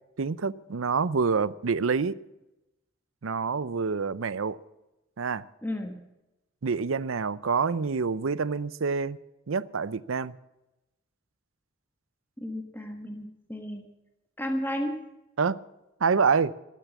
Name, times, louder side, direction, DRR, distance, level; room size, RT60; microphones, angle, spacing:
voice 1, 0.2-2.1 3.2-4.6 5.2-5.4 6.6-9.2 9.5-10.3 15.4-15.6 16.0-16.5, right 5 dB, 90° right, 18 dB, 0.6 m, -27 dB
voice 2, 5.6-5.9 12.4-13.8 14.4-15.0, equal, 10° left, 3 dB, 1.4 m, -33 dB
13.0 x 12.5 x 7.1 m, 0.96 s
head